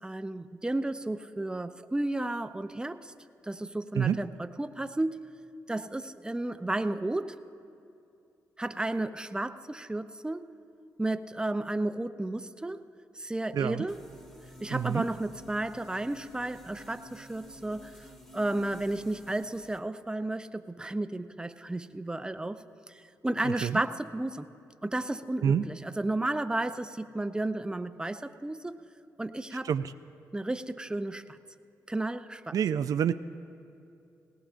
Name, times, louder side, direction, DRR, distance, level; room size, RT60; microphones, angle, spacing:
voice 1, 0.0-3.1 3.4-5.3 5.7-7.3 8.6-10.5 11.0-12.8 13.2-14.0 14.6-17.9 18.3-24.5 24.8-28.8 29.2-29.7 30.3-31.4 31.9-32.6, right 2 dB, 10° right, 10 dB, 0.5 m, -33 dB
voice 2, 13.5-13.9 14.7-15.1 23.4-23.8 25.4-25.6 29.6-29.9 32.5-33.1, right 8 dB, 65° right, 11 dB, 0.3 m, -27 dB
sound 1, 13.9-19.8, left 1 dB, 10° left, 1.5 m, -51 dB
19.0 x 18.0 x 2.5 m, 2.6 s
cardioid pair, 60°, 7 cm